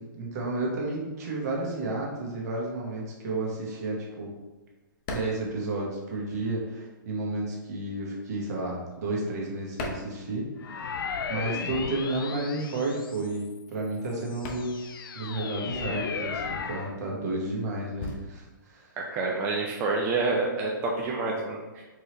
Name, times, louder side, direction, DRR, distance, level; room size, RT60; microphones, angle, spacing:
voice 1, 0.0-4.3 5.1-19.0, right 2 dB, 50° right, -2 dB, 1.3 m, -32 dB
sound 1, 4.5-6.6 6.9-11.0 11.3-20.0, left 2 dB, 30° left, 0.6 m, -42 dB
sound 2, 10.6-13.5 14.1-17.0, left 5 dB, 80° left, 0.4 m, -35 dB
voice 2, 19.0-21.8, right 3 dB, 20° right, -2 dB, 0.4 m, -28 dB
4.5 x 3.3 x 3.0 m, 1.2 s
hypercardioid pair, 155°, 11 cm